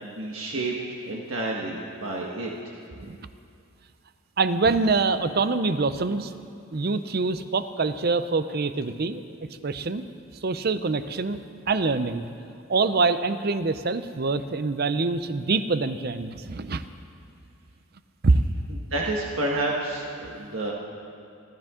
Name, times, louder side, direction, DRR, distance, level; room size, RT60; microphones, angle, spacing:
voice 1, 0.0-0.7 1.0-2.5 18.9-20.7, right 2 dB, 70° right, -2 dB, 1.4 m, -29 dB
voice 2, 4.4-6.3 6.7-9.2 9.6-10.1 10.4-11.4 11.7-12.3 12.7-16.8 18.2-18.4, right 3 dB, 45° right, 11 dB, 0.6 m, -25 dB
27.5 x 12.5 x 3.7 m, 2.4 s
head